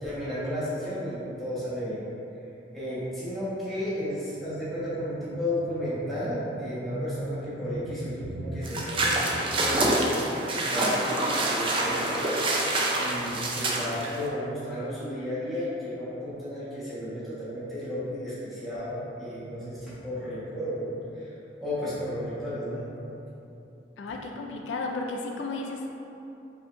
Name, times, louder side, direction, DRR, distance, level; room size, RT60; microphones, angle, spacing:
voice 1, 0.0-2.0 2.7-12.3 12.6-20.9 21.1-21.3 21.6-22.8, equal, ahead, -13 dB, 1.4 m, -33 dB
sound 1, 8.6-14.3, right 1 dB, 30° right, 0.5 m, -27 dB
voice 2, 24.0-25.9, left 3 dB, 80° left, 1 dB, 0.4 m, -33 dB
4.9 x 3.7 x 2.6 m, 2.9 s
head